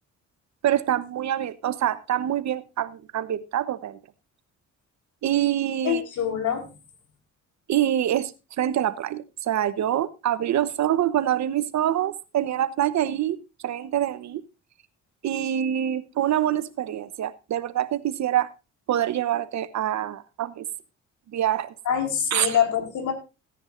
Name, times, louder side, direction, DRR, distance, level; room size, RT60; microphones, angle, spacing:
voice 1, 0.6-4.0 5.2-6.0 7.7-8.3 8.6-14.4 15.2-18.5 18.9-20.7 21.3-21.7 22.3-22.6, right 11 dB, 65° right, 14 dB, 1.1 m, -25 dB
voice 2, 5.8-6.7 21.9-23.1, left 8 dB, 75° left, 4 dB, 4.0 m, -25 dB
17.5 x 10.0 x 2.5 m, 0.28 s
cardioid pair, 90°, 30 cm